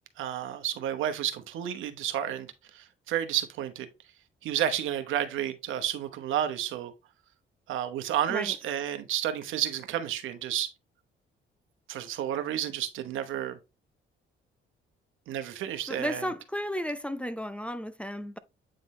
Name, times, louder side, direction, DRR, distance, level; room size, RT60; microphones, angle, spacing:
voice 1, 0.2-3.9 4.4-6.9 7.7-10.7 11.9-13.6 15.3-16.2, right 11 dB, 85° right, 1.0 m, -31 dB
voice 2, 15.9-18.4, equal, 5° left, 0.5 m, -33 dB
8.7 x 3.9 x 3.1 m
cardioid pair, 90°, 20 cm